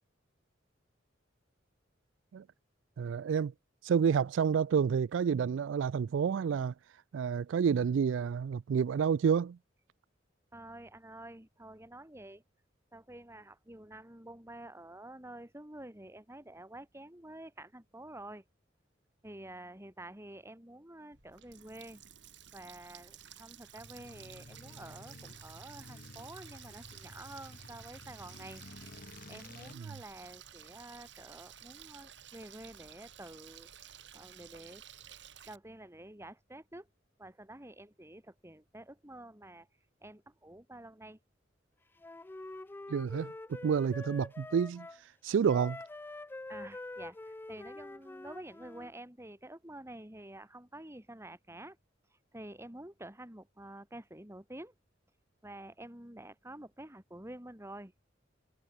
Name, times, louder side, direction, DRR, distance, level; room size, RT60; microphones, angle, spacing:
voice 1, 3.0-3.5 3.8-6.7 7.1-9.6 29.7-29.9 42.9-45.8, right 7 dB, 90° right, 0.3 m, -29 dB
voice 2, 10.5-12.4 12.9-18.4 19.2-22.0 22.5-29.0 29.3-33.7 34.1-34.8 35.5-36.9 37.2-39.7 40.0-41.2 46.5-51.8 52.3-54.7 55.4-57.9, right 1 dB, 15° right, 3.2 m, -49 dB
Water tap faucet, 21.1-35.6, right 10 dB, 70° right, 6.7 m, -53 dB
sound 1, 23.7-29.7, left 2 dB, 50° left, 1.5 m, -52 dB
Wind instrument woodwind instrument, 42.0-45.0 45.4-48.9, left 2 dB, 10° left, 0.3 m, -46 dB
head